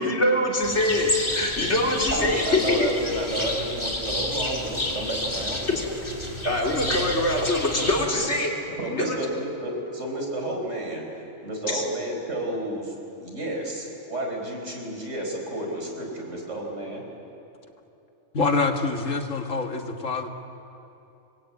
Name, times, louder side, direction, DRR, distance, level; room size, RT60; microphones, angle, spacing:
voice 1, 0.0-2.8 6.4-8.6 9.0-9.2 11.7-11.8, left 1 dB, 60° left, -1 dB, 3.9 m, -24 dB
sound 1, 0.6-8.1, left 1 dB, 20° left, 2.0 m, -30 dB
voice 2, 2.1-5.9 8.6-11.0 11.4-12.9 13.2-17.0, right 1 dB, 70° right, 1 dB, 4.9 m, -31 dB
voice 3, 18.3-20.3, left 4 dB, 85° left, 4 dB, 2.1 m, -25 dB
26.5 x 22.0 x 8.6 m, 2.8 s
omnidirectional pair, 1.3 m